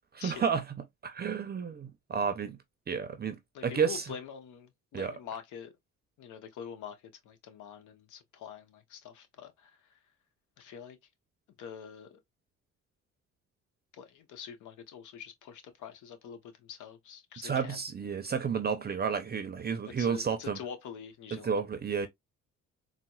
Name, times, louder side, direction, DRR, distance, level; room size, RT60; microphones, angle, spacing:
voice 1, 0.1-0.8 1.0-2.6 2.9-4.1 4.9-5.1 17.4-20.6 21.3-22.1, right 6 dB, 35° right, 0.5 m, -31 dB
voice 2, 3.5-5.7 6.2-7.0 7.2-9.8 10.6-11.0 11.6-12.2 13.9-17.8 19.9-21.5, left 8 dB, 80° left, 0.9 m, -45 dB
4.1 x 2.1 x 2.3 m
cardioid pair, 90°, 30 cm